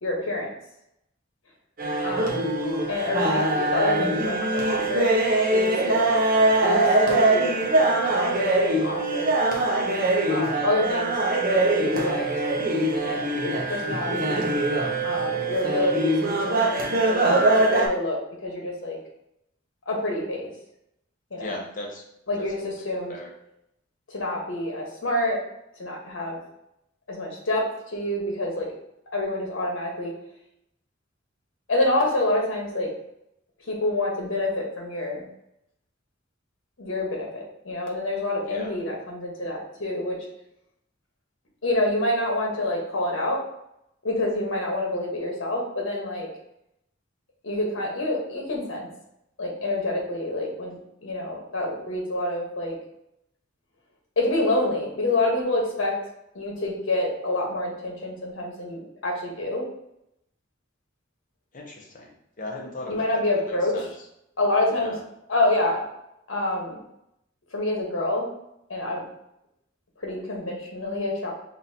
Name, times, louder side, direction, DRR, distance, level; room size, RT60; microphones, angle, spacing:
voice 1, 0.0-0.5 2.0-2.4 2.9-5.1 5.5-6.1 6.3-9.4 10.3-11.1 11.5-12.2 13.0-14.4 15.0-19.0 19.9-20.5 21.3-21.6 22.3-23.1 24.1-25.4 25.8-26.4 27.1-28.7 29.1-30.1 31.7-32.9 33.7-35.2 36.8-40.2 41.6-43.4 44.0-46.3 47.4-48.9 49.4-52.7 54.2-56.0 56.3-59.6 62.9-63.8 64.4-64.9 65.3-65.8 66.3-66.8 67.5-68.3 68.7-69.0 70.0-71.3, left 1 dB, 75° left, -1 dB, 1.2 m, -27 dB
sound 1, 1.8-17.9, right 2 dB, 45° right, 0.7 m, -23 dB
voice 2, 21.4-22.0 22.4-22.5 23.1-23.3 38.4-38.7 61.5-63.2 63.5-63.9 64.7-65.0, left 2 dB, 40° left, -1 dB, 0.9 m, -37 dB
5.6 x 2.7 x 2.8 m, 0.80 s
head